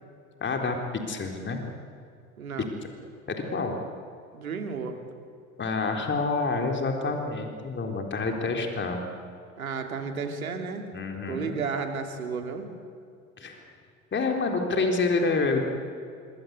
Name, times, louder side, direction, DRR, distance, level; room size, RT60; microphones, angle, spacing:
voice 1, 0.4-1.6 2.6-2.7 3.3-3.8 5.6-9.1 10.9-11.5 13.4-13.6 14.1-15.6, left 3 dB, 25° left, 3 dB, 4.0 m, -28 dB
voice 2, 2.4-2.7 4.3-5.0 9.6-10.9 11.3-12.7, right 5 dB, 85° right, 5 dB, 2.9 m, -32 dB
26.5 x 23.0 x 8.3 m, 2.5 s
hypercardioid pair, 75°, 41 cm